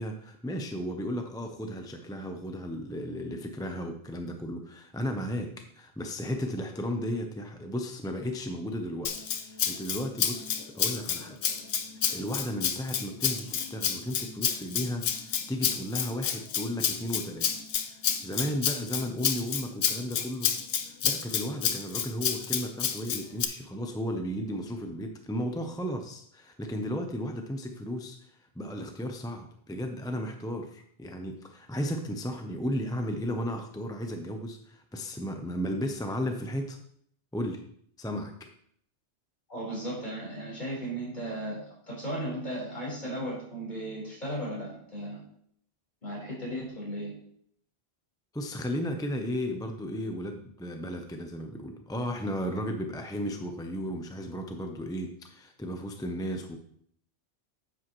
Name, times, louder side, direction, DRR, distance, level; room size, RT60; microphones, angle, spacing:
voice 1, 0.0-11.4 11.8-17.5 17.8-20.5 20.8-36.8 37.3-37.6 38.0-38.5 48.3-56.6, equal, 5° left, 4 dB, 0.5 m, -34 dB
Rattle (instrument), 9.1-23.5, left 8 dB, 90° left, 1.1 m, -30 dB
voice 2, 39.5-45.2 46.0-47.1, right 1 dB, 40° left, -6 dB, 4.6 m, -36 dB
9.8 x 7.8 x 3.1 m, 0.65 s
omnidirectional pair, 1.1 m